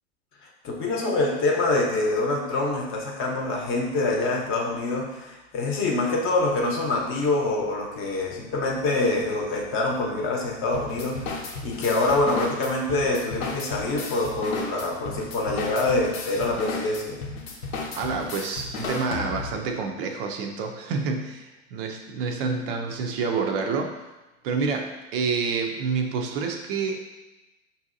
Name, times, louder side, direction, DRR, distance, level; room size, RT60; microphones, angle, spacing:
voice 1, 0.6-17.2, left 2 dB, 30° left, -1 dB, 0.8 m, -25 dB
sound 1, 10.7-19.7, left 3 dB, 80° left, 0.8 m, -34 dB
voice 2, 18.0-24.1 24.4-27.0, right 5 dB, 45° right, 3 dB, 0.4 m, -28 dB
5.4 x 2.7 x 2.5 m, 1.1 s
hypercardioid pair, 105°, 40 cm